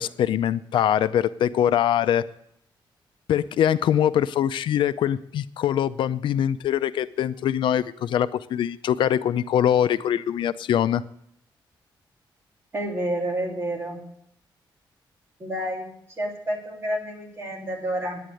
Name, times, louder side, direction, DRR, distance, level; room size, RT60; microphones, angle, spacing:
voice 1, 0.0-2.2 3.3-11.0, left 10 dB, 80° left, 14 dB, 0.5 m, -23 dB
voice 2, 12.7-14.0 15.4-15.9 16.2-18.2, right 1 dB, 30° right, -1 dB, 2.9 m, -29 dB
10.0 x 9.3 x 7.7 m, 0.72 s
wide cardioid pair, 170°, 8 cm